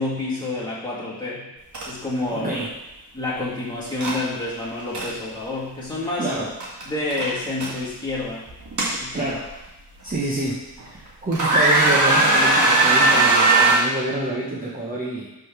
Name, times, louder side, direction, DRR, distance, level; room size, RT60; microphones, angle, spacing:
voice 1, 0.0-1.5 1.9-2.7 3.1-6.3 6.8-8.4 9.0-9.3, left 2 dB, 10° left, -8 dB, 2.0 m, -28 dB
sound 1, 1.7-1.8 2.2-2.4 4.0-4.2 4.7-5.1 6.6-6.8 7.1-7.7 8.5-9.5 10.1-10.2 10.8-11.0 11.3-13.8, right 2 dB, 50° right, 1.8 m, -18 dB
voice 2, 2.3-2.7 6.2-6.5 9.1-9.5 10.0-15.3, right 2 dB, 20° right, -6 dB, 0.9 m, -27 dB
6.1 x 3.8 x 5.9 m, 1.0 s
wide cardioid pair, 150°, 39 cm